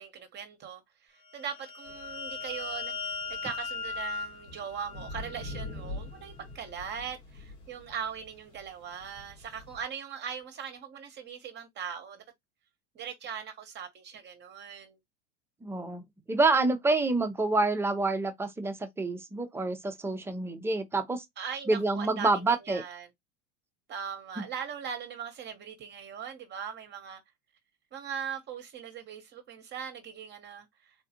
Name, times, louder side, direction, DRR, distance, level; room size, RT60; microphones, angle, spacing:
voice 1, 0.0-3.1 3.4-12.2 12.9-15.0 21.4-23.1 23.9-27.2 27.9-31.0, right 7 dB, 30° right, 0.7 m, -40 dB
sound 1, 1.3-5.8, left 4 dB, 20° left, 0.9 m, -38 dB
sound 2, 1.8-9.8, left 2 dB, 85° left, 2.1 m, -45 dB
voice 2, 15.6-16.0 16.3-21.2 21.7-22.8, right 3 dB, 5° right, 0.3 m, -27 dB
3.6 x 2.3 x 2.7 m
hypercardioid pair, 100°, 36 cm